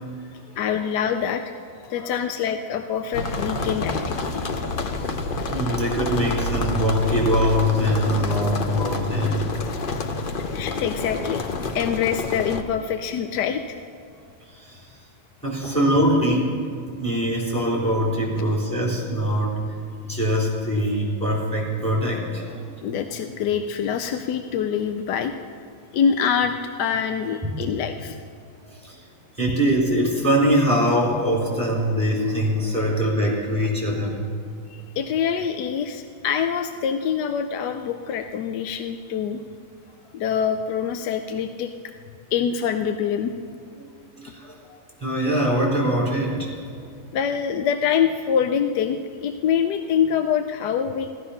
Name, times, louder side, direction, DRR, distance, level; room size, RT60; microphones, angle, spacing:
voice 1, 0.6-1.4 1.9-4.5 9.8-11.4 11.7-13.8 22.8-25.3 25.9-28.2 34.7-39.4 40.1-41.7 42.3-43.3 47.1-51.1, left 7 dB, 75° left, 7 dB, 1.2 m, -25 dB
sound 1, 3.1-12.6, left 3 dB, 50° left, 0.6 m, -28 dB
voice 2, 5.5-9.5 14.5-14.9 15.4-16.5 17.0-19.6 20.0-22.7 27.4-27.5 28.7-29.0 29.4-34.2 43.8-43.9 44.1-46.5, equal, 5° left, -5 dB, 3.8 m, -23 dB
15.5 x 13.0 x 5.8 m, 2.4 s
omnidirectional pair, 1.9 m